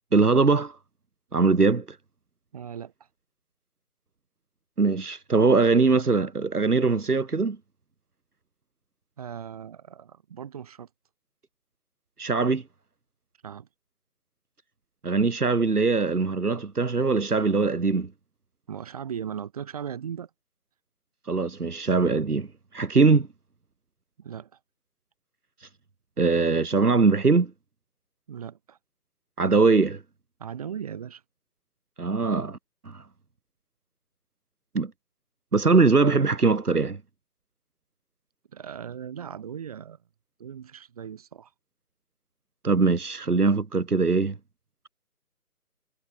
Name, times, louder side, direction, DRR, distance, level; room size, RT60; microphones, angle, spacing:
voice 1, 0.1-0.8 1.3-1.8 4.8-7.6 12.2-12.6 15.0-18.1 21.3-22.5 22.7-23.3 26.2-27.5 29.4-30.0 32.0-32.6 32.8-33.0 34.7-34.9 35.5-37.0 42.6-44.3, right 4 dB, 75° right, 3.0 m, -21 dB
voice 2, 2.5-2.9 9.2-10.9 13.4-13.7 18.7-20.3 24.2-24.5 28.3-28.8 30.4-31.2 38.5-40.0 40.4-41.5, right 8 dB, 25° right, 7.1 m, -38 dB
figure-of-eight pair, 170°, 46 cm